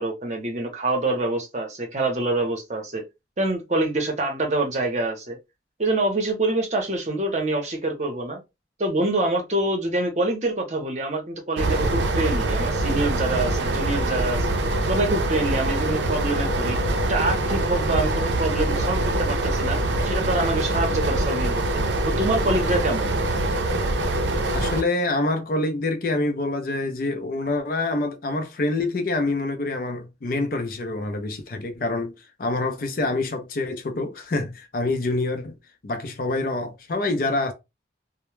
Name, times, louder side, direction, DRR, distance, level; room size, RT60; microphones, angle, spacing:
voice 1, 0.0-3.0 3.4-5.4 5.8-8.4 8.8-14.5 14.9-19.8 20.0-21.6 22.1-23.1, right 2 dB, 40° right, 0.7 m, -26 dB
sound 1, 11.6-24.8, right 2 dB, 75° right, 0.5 m, -24 dB
voice 2, 24.5-35.6 35.8-37.5, left 2 dB, 50° left, 0.4 m, -26 dB
2.1 x 2.0 x 3.0 m
head